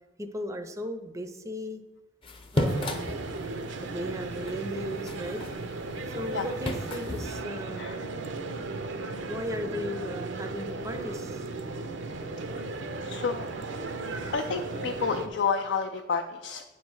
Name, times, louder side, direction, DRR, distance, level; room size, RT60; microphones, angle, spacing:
voice 1, 0.2-1.8 2.5-3.1 3.8-5.4 6.1-7.9 9.3-11.5, left 1 dB, 15° right, 7 dB, 0.5 m, -36 dB
sound 1, 2.2-7.3, left 1 dB, 30° left, 0.7 m, -35 dB
sound 2, 2.6-15.3, right 3 dB, 70° right, 0.6 m, -36 dB
voice 2, 13.0-13.7 14.3-16.6, left 5 dB, 65° left, 3 dB, 0.4 m, -30 dB
9.2 x 3.2 x 6.2 m, 1.1 s
head